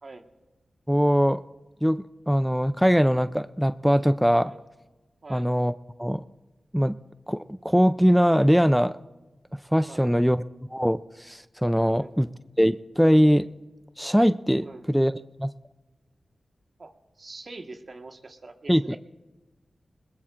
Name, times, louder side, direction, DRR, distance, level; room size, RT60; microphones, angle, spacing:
voice 1, 0.9-1.4 1.8-4.5 5.3-5.7 6.0-6.2 6.7-6.9 7.3-9.0 9.7-10.4 10.7-12.3 12.6-13.4 14.0-15.1 15.4-15.5 18.7-19.0, equal, ahead, 12 dB, 0.4 m, -21 dB
voice 2, 14.6-14.9 16.8-19.0, right 3 dB, 55° right, 5 dB, 1.5 m, -44 dB
21.0 x 20.5 x 2.5 m, 1.1 s
cardioid pair, 50°, 0 cm